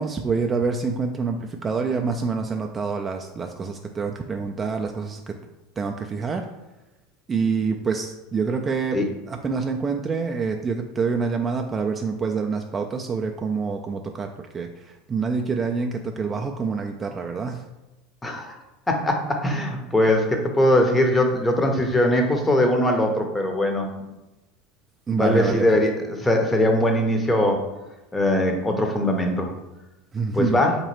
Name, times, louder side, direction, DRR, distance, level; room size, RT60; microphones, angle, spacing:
voice 1, 0.0-5.3 5.8-6.5 7.3-9.0 9.3-17.6 25.1-25.8 30.1-30.7, right 5 dB, 25° right, 3 dB, 0.3 m, -26 dB
voice 2, 18.2-18.6 18.9-23.9 25.2-27.7 28.1-29.5 30.3-30.8, left 1 dB, 15° left, 3 dB, 0.7 m, -21 dB
3.8 x 2.9 x 3.0 m, 1.0 s
figure-of-eight pair, 80°, 0 cm